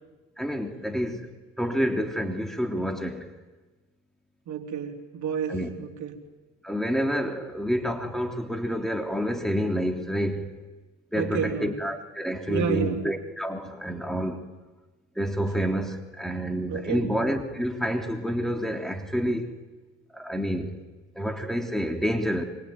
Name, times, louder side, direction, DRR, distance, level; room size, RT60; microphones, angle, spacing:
voice 1, 0.4-1.3 1.6-3.3 5.5-5.7 6.6-10.5 11.1-14.4 15.1-19.5 20.1-20.8 21.1-22.4, equal, ahead, 3.2 m, -28 dB
voice 2, 4.5-6.2 11.2-11.8 12.5-13.0 16.7-17.1, right 7 dB, 70° right, 3.4 m, -30 dB
25.5 x 24.5 x 9.3 m
cardioid pair, 90°, 30 cm